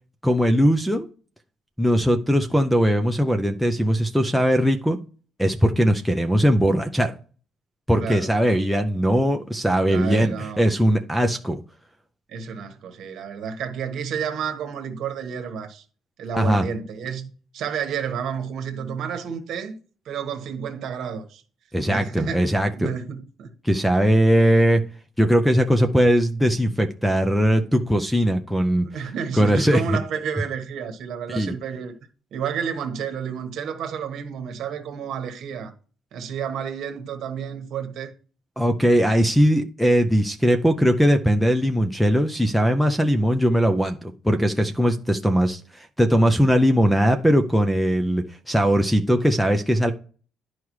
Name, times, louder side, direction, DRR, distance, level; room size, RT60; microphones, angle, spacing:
voice 1, 0.2-1.1 1.8-5.0 5.4-7.1 7.9-11.6 16.3-16.6 21.7-22.9 23.6-24.8 25.2-28.9 29.3-29.8 31.3-31.5 38.6-49.9, equal, ahead, 0.4 m, -20 dB
voice 2, 8.0-8.3 9.9-10.8 12.3-15.8 16.2-19.8 20.0-21.4 21.8-23.5 28.8-31.9 32.3-35.7 36.1-38.1, right 7 dB, 50° right, 1.3 m, -31 dB
11.5 x 4.7 x 3.1 m
cardioid pair, 175°, 0 cm